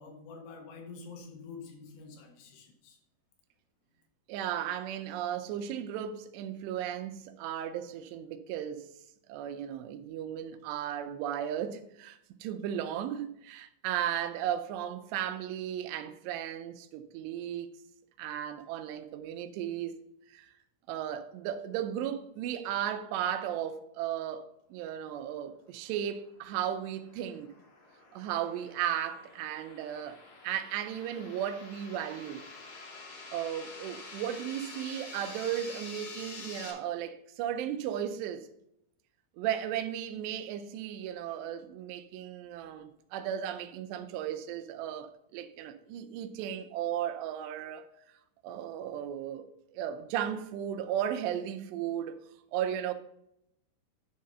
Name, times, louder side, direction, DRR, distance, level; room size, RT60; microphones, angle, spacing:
voice 1, 0.0-3.0, left 4 dB, 80° left, 3.6 m, -47 dB
voice 2, 4.3-8.9 9.3-17.8 18.2-20.0 20.3-20.5 20.9-27.5 28.1-32.4 33.3-38.5 39.4-47.9 48.4-52.2 52.5-52.9, right 10 dB, 80° right, 2.8 m, -35 dB
sound 1, 26.3-36.7, left 3 dB, 55° left, 1.8 m, -48 dB
10.5 x 3.8 x 5.5 m
omnidirectional pair, 5.1 m